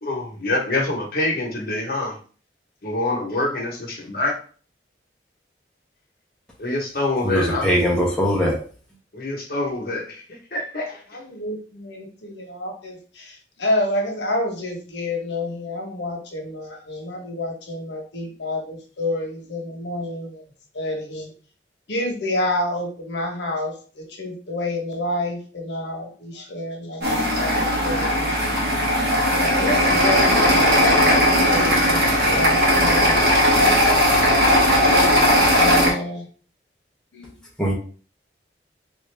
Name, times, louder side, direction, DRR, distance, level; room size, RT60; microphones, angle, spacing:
voice 1, 0.0-2.2 2.8-4.3 6.6-7.7 9.1-11.0, left 2 dB, 55° left, -1 dB, 1.0 m, -26 dB
voice 2, 7.2-8.6 37.6-37.7, equal, 5° left, -3 dB, 0.7 m, -20 dB
voice 3, 11.1-20.4 20.7-21.3 21.9-28.4 29.4-32.0 32.2-33.5 35.5-36.3 37.1-37.3, left 1 dB, 80° left, 1 dB, 0.9 m, -28 dB
sound 1, 27.0-35.9, equal, 60° right, 1.1 m, -17 dB
3.3 x 2.6 x 3.3 m, 0.41 s
head